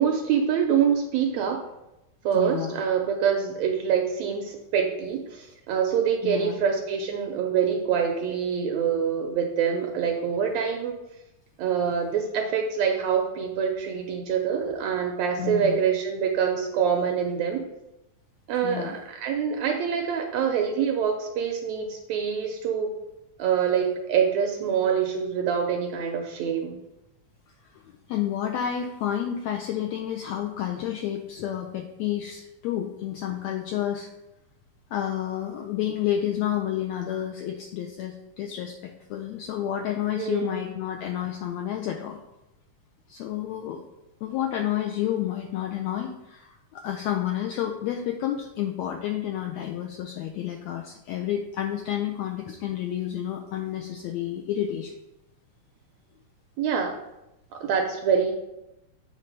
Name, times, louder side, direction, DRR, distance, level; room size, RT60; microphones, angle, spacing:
voice 1, 0.0-1.6 2.2-10.9 11.6-17.6 18.5-22.9 23.4-26.8 40.2-40.6 56.6-56.9 57.5-58.3, right 7 dB, 80° right, 2 dB, 1.6 m, -25 dB
voice 2, 2.3-2.8 6.2-6.6 15.4-15.8 18.6-19.0 28.1-34.1 34.9-42.2 43.1-43.8 44.2-54.9, left 11 dB, 85° left, 2 dB, 1.5 m, -30 dB
8.3 x 3.2 x 5.3 m, 0.91 s
omnidirectional pair, 3.6 m